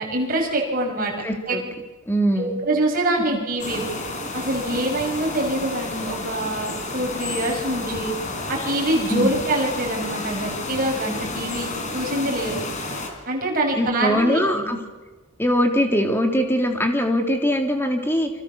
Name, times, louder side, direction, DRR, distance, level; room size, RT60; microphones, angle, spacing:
voice 1, 0.0-1.1 1.5-1.7 2.4-3.9 4.3-8.1 8.5-12.6 13.3-14.7, right 1 dB, 40° right, 1 dB, 6.5 m, -25 dB
voice 2, 1.2-1.6 2.1-2.6 9.1-9.3 13.7-14.8 15.4-18.3, equal, 10° left, 3 dB, 3.2 m, -21 dB
sound 1, 3.6-13.1, left 2 dB, 35° left, 4.6 m, -31 dB
29.0 x 26.0 x 7.1 m, 1.2 s
head